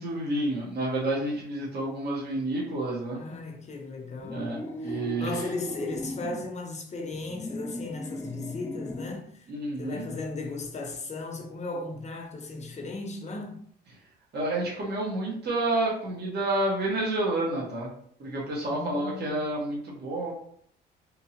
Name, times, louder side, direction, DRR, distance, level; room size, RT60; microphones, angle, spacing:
voice 1, 0.0-3.2 4.3-5.4 9.5-10.1 14.3-17.9 18.2-20.3, right 2 dB, 55° right, 1.4 m, -29 dB
voice 2, 3.1-9.5 9.8-13.6 18.7-19.4, left 2 dB, 35° left, 0.8 m, -36 dB
sound 1, 4.2-6.5 7.1-9.3, left 1 dB, 10° left, 0.4 m, -38 dB
3.7 x 2.7 x 2.9 m
cardioid pair, 90°, 20 cm